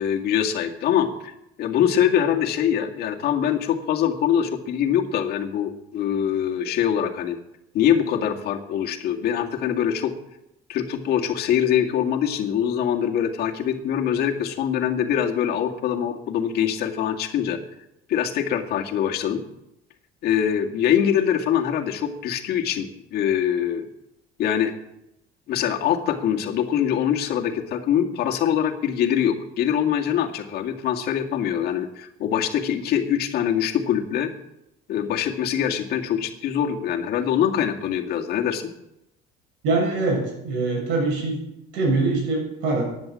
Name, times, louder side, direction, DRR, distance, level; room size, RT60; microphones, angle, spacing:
voice 1, 0.0-1.3 1.6-7.4 7.7-10.1 10.7-17.6 18.1-19.4 20.2-23.9 24.4-24.8 25.5-34.3 34.9-38.7, left 9 dB, 60° left, 2 dB, 2.1 m, -23 dB
voice 2, 39.6-41.4 41.7-42.8, right 3 dB, 85° right, 1 dB, 7.5 m, -23 dB
15.5 x 10.5 x 7.5 m, 0.86 s
cardioid pair, 150°, 18 cm